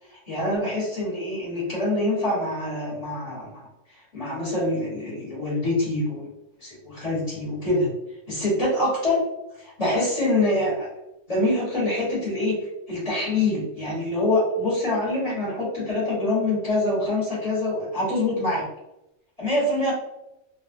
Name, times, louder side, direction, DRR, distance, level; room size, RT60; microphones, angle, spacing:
voice 1, 0.3-3.7 4.1-6.3 6.6-7.9 8.3-9.2 9.6-10.9 11.3-18.6 19.4-19.9, left 2 dB, 30° left, -7 dB, 1.4 m, -25 dB
3.4 x 2.4 x 2.6 m, 0.88 s
omnidirectional pair, 1.2 m